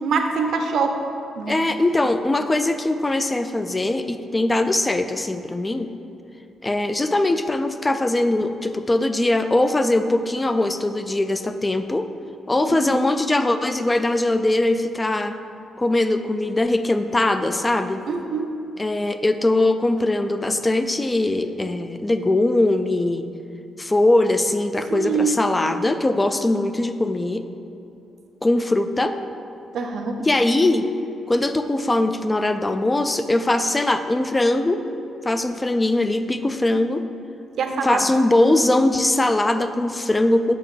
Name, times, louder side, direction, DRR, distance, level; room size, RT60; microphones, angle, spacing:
voice 1, 0.0-1.0 1.4-1.6 12.7-13.0 18.1-18.6 24.9-25.4 29.7-30.2 37.5-38.0, right 5 dB, 60° right, 5 dB, 0.7 m, -24 dB
voice 2, 1.5-5.9 6.6-12.1 12.5-15.4 15.8-18.0 18.8-23.3 23.8-27.4 28.4-29.1 30.2-30.9 31.3-34.8 35.2-37.0 37.8-40.5, left 2 dB, 15° left, 9 dB, 0.3 m, -21 dB
6.3 x 4.6 x 6.1 m, 2.7 s
cardioid pair, 155°, 0 cm